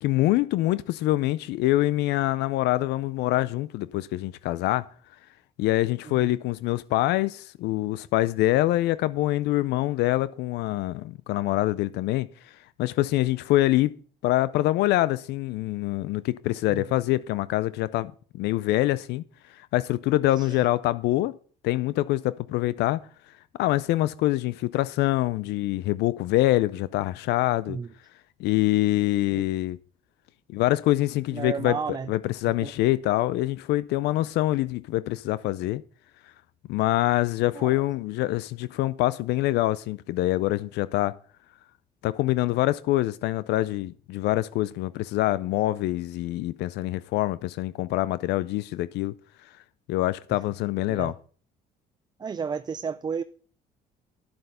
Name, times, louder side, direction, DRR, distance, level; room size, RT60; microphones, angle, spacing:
voice 1, 0.0-4.9 5.6-12.3 12.8-13.9 14.2-19.2 19.5-21.3 21.6-23.0 23.6-27.8 28.4-29.8 30.5-35.8 36.7-41.1 42.0-49.1 49.9-51.1, left 16 dB, 80° left, 0.4 m, -25 dB
voice 2, 31.3-32.1 32.6-32.7 37.5-37.7 50.9-51.1 52.2-53.2, right 6 dB, 25° right, 0.4 m, -32 dB
10.5 x 7.7 x 5.4 m
cardioid pair, 110°, 17 cm